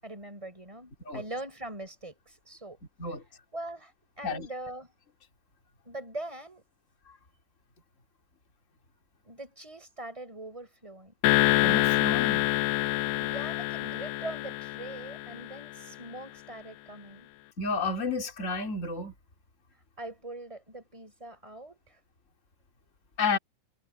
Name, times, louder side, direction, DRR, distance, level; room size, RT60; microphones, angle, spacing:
voice 1, 0.0-2.8 3.5-4.9 5.8-6.6 9.2-11.1 13.2-17.3 20.0-22.0, right 1 dB, 10° right, 8.0 m, -42 dB
sound 1, 11.2-15.7, left 18 dB, 85° left, 1.7 m, -26 dB
voice 2, 11.6-12.5 17.6-19.1 23.2-23.4, left 4 dB, 20° left, 3.3 m, -31 dB
omnidirectional pair, 4.0 m